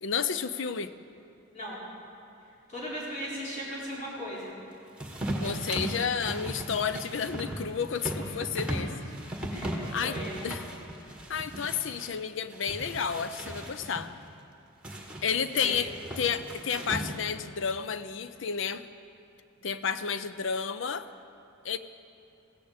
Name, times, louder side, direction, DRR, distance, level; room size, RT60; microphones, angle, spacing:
voice 1, 0.0-0.9 5.4-8.9 9.9-10.2 10.4-10.6 11.3-14.1 15.2-15.9 16.2-18.8 19.6-21.1 21.6-21.8, left 6 dB, 70° left, 12 dB, 0.6 m, -31 dB
voice 2, 2.7-4.5 8.2-8.3 8.7-9.1 9.5-9.8 10.0-10.3 15.5-15.7, equal, 35° left, -7 dB, 4.6 m, -38 dB
sound 1, 5.0-12.1 12.5-14.1 14.8-17.4, right 1 dB, 5° right, 1.5 m, -37 dB
16.5 x 16.0 x 5.1 m, 2.7 s
head